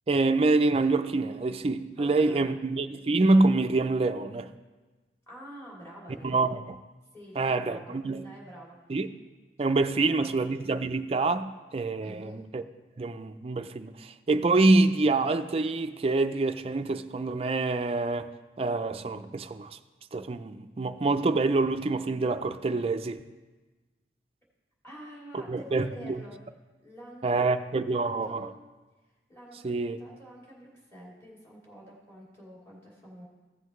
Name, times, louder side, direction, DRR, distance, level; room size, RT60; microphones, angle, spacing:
voice 1, 0.1-4.5 6.2-6.8 7.4-8.2 8.9-9.1 9.6-12.6 13.0-19.8 20.1-23.2 25.3-26.2 27.2-28.5 29.6-30.0, right 3 dB, 35° right, 0.4 m, -26 dB
voice 2, 2.0-2.5 5.3-6.5 7.1-8.8 9.7-10.3 12.0-12.4 24.8-26.4 26.8-27.6 27.9-28.6 29.3-33.3, equal, 15° left, 2.7 m, -47 dB
15.5 x 7.7 x 3.1 m
head